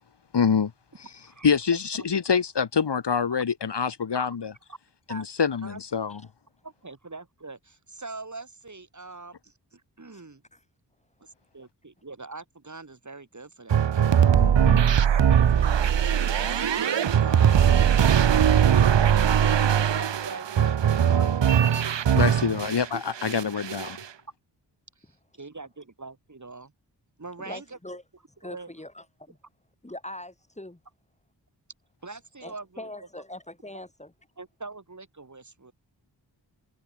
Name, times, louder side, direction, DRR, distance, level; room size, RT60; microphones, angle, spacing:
voice 1, 0.3-0.7 1.4-4.5 5.1-6.2 14.3-14.9 22.1-24.0, left 6 dB, 70° left, 1.8 m, -26 dB
voice 2, 6.6-10.4 11.2-14.1 14.9-17.9 20.0-21.4 21.9-22.1 22.9-23.0 25.0-26.7 27.2-27.8 28.4-28.7 32.0-32.9 34.4-35.7, right 3 dB, 40° right, 7.6 m, -42 dB
sound 1, 13.7-22.9 23.2-24.0, right 8 dB, 80° right, 1.0 m, -20 dB
voice 3, 27.4-28.0 28.4-29.4 29.8-30.8 32.4-34.1, left 1 dB, 15° left, 6.5 m, -42 dB
wide cardioid pair, 105°, 43 cm